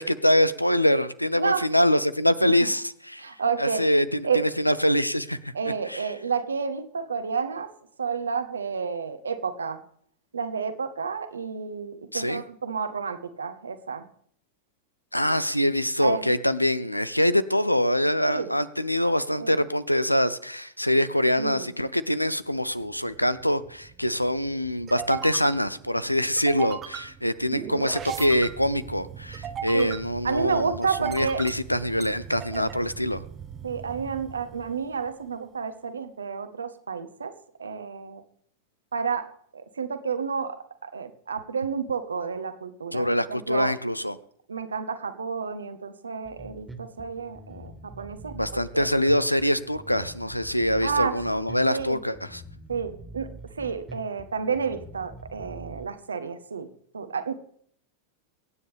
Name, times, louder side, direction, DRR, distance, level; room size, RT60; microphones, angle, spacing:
voice 1, 0.0-3.3 3.6-5.5 5.9-6.1 12.1-12.4 15.1-33.2 42.9-44.2 48.3-52.4, equal, 90° left, 16 dB, 0.7 m, -24 dB
voice 2, 3.2-3.9 4.2-4.4 5.5-7.7 8.0-9.8 10.3-14.1 16.0-16.3 18.3-18.5 19.4-19.6 21.4-21.7 29.7-30.0 30.2-31.4 32.5-32.6 33.6-37.3 37.6-38.2 38.9-39.3 39.5-43.7 44.5-48.9 50.8-51.1 51.7-52.0 52.7-53.3 53.6-57.4, right 5 dB, 75° right, 11 dB, 1.3 m, -30 dB
sound 1, 22.7-35.3, right 8 dB, 25° right, 1.0 m, -39 dB
Bass guitar, 46.2-55.8, right 2 dB, 5° right, 2.0 m, -44 dB
23.5 x 9.8 x 3.5 m, 0.64 s
figure-of-eight pair, 90°, 0 cm